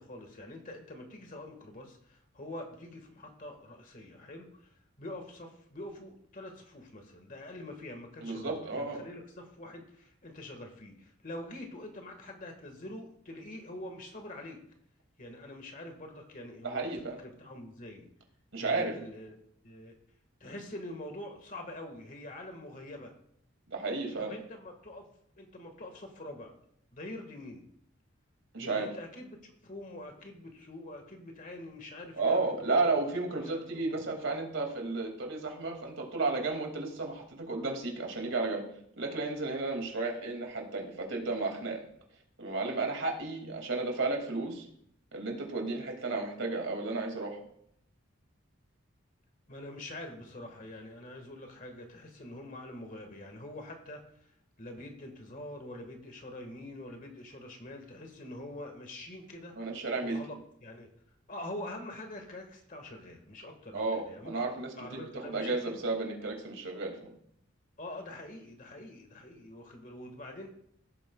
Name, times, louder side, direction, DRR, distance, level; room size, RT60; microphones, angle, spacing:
voice 1, 0.0-14.6 15.2-16.9 17.2-18.1 18.6-19.4 19.6-19.9 20.4-23.1 24.2-25.0 25.4-26.5 26.9-27.6 28.6-32.9 33.4-34.0 49.5-54.3 54.6-59.8 60.0-60.9 61.3-64.5 64.8-65.7 67.8-70.5, left 1 dB, 40° left, 4 dB, 1.6 m, -45 dB
voice 2, 8.2-9.0 16.6-17.2 18.5-19.0 23.7-24.3 28.5-28.9 32.2-38.6 39.0-41.8 42.4-44.7 45.1-47.4 59.6-60.2 63.7-67.1, right 3 dB, 70° right, 1 dB, 2.4 m, -33 dB
16.5 x 8.7 x 2.3 m, 0.69 s
head